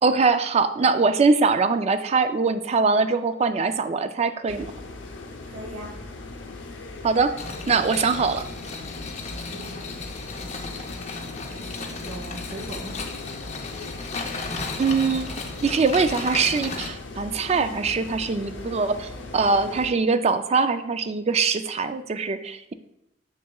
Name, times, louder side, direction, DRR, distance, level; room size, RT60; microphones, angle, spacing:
voice 1, 0.0-4.7 7.0-7.3 7.7-8.4 14.8-22.7, right 4 dB, 35° right, 10 dB, 0.4 m, -22 dB
sound 1, 4.5-19.9, left 2 dB, 80° left, 0.8 m, -39 dB
voice 2, 5.5-5.9 9.5-10.2 11.4-13.0, right 1 dB, 90° right, -4 dB, 1.2 m, -40 dB
sound 2, 7.4-16.9, left 4 dB, 35° left, 0.7 m, -35 dB
6.6 x 6.4 x 2.3 m, 0.86 s
head